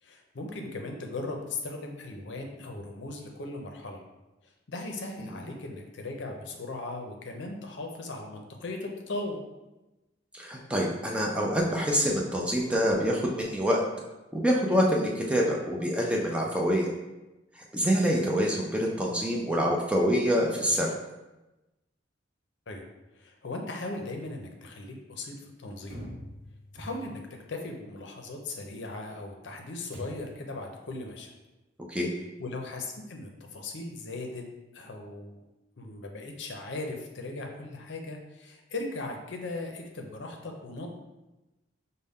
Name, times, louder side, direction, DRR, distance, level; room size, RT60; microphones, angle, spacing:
voice 1, 0.0-4.0 4.7-9.4 22.7-22.8 23.2-26.0 26.7-27.2 27.5-31.3 32.4-34.4 34.7-35.5 35.8-40.9, left 2 dB, 60° left, 2 dB, 0.6 m, -38 dB
voice 2, 10.3-13.8 14.3-16.9 17.6-20.9 31.9-32.1, equal, 5° right, -2 dB, 0.4 m, -26 dB
sound 1, 25.9-27.4 29.9-30.5, equal, 45° right, 1.0 m, -43 dB
5.3 x 2.2 x 3.5 m, 1.0 s
head